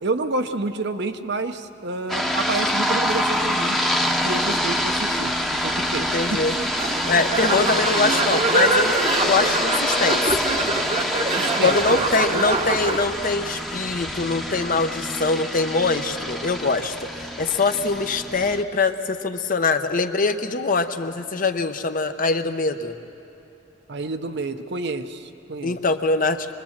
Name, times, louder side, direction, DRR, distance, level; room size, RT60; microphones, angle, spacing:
voice 1, 0.0-3.8 4.2-6.0 6.3-6.7 7.1-7.3 11.3-12.0 12.3-12.5 23.9-25.8, right 3 dB, 60° right, 8 dB, 0.8 m, -29 dB
sound 1, 2.1-18.6, equal, ahead, 0.9 m, -26 dB
voice 2, 6.1-6.5 7.1-9.0 9.3-10.2 11.6-22.9 25.6-26.5, left 3 dB, 45° left, 8 dB, 0.8 m, -23 dB
sound 2, 6.7-13.0, right 2 dB, 35° right, 1.0 m, -24 dB
24.5 x 20.5 x 7.3 m, 2.9 s
head